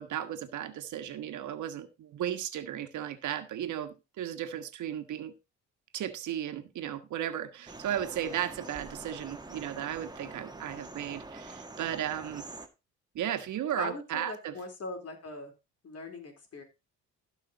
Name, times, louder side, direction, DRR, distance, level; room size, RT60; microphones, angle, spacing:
voice 1, 0.0-5.3 5.9-12.4 13.1-14.5, right 10 dB, 75° right, 1.5 m, -35 dB
sound 1, 7.7-12.7, right 2 dB, 15° right, 1.6 m, -45 dB
voice 2, 13.8-15.5 15.8-16.6, left 2 dB, 55° left, 4.2 m, -40 dB
16.0 x 5.6 x 4.0 m
cardioid pair, 90°, 30 cm